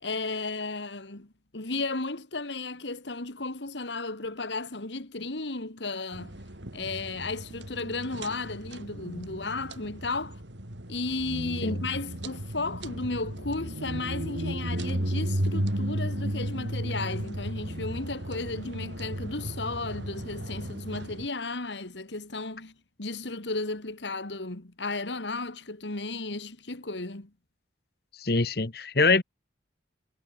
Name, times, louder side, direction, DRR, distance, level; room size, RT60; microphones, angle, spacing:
voice 1, 0.0-6.4 6.7-10.4 10.9-22.7 23.0-27.3, left 3 dB, 80° left, 2.3 m, -34 dB
sound 1, 6.1-21.3, right 1 dB, 85° right, 4.3 m, -34 dB
voice 2, 28.2-29.2, left 3 dB, 55° left, 1.3 m, -24 dB
head